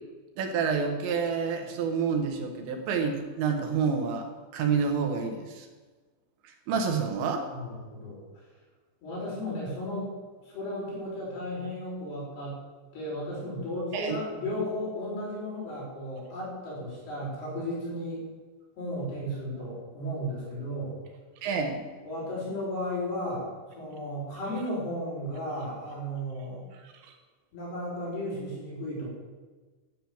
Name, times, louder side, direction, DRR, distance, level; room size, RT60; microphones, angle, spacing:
voice 1, 0.4-5.7 6.5-7.5 13.9-14.2 21.4-21.8, right 5 dB, 85° right, 4 dB, 3.7 m, -28 dB
voice 2, 7.5-8.2 9.0-10.1 10.4-12.6 12.9-18.2 18.8-21.0 22.0-26.6 27.5-29.1, equal, 65° left, -6 dB, 7.0 m, -34 dB
12.5 x 7.8 x 7.2 m, 1.4 s
omnidirectional pair, 5.1 m